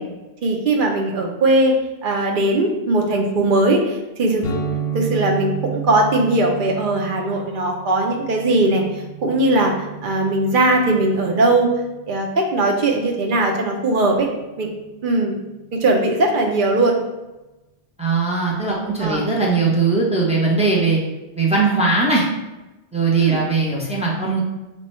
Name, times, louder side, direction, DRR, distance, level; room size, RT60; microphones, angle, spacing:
voice 1, 0.4-1.8 2.0-4.4 4.9-8.8 9.2-9.7 10.0-11.7 12.1-14.3 14.6-14.7 15.0-15.3 15.7-17.0 19.0-19.3 23.1-23.4, right 2 dB, 55° right, 1 dB, 0.7 m, -19 dB
sound 1, 4.4-12.0, right 7 dB, 70° left, 0.7 m, -32 dB
voice 2, 18.0-21.0 21.4-22.2 22.9-24.4, right 3 dB, 10° right, -4 dB, 0.5 m, -19 dB
3.1 x 2.2 x 4.2 m, 1.0 s
omnidirectional pair, 1.1 m